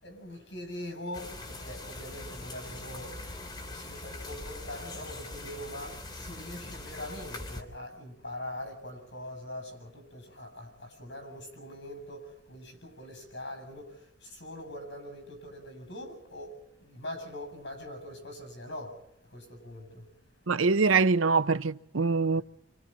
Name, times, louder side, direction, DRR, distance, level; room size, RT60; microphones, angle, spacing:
voice 1, 0.0-20.1 22.3-22.4, left 1 dB, 60° left, 7.6 m, -43 dB
sound 1, 1.1-7.6, left 2 dB, 20° left, 3.3 m, -42 dB
voice 2, 20.5-22.4, right 4 dB, 90° right, 0.8 m, -24 dB
29.0 x 26.5 x 4.3 m
head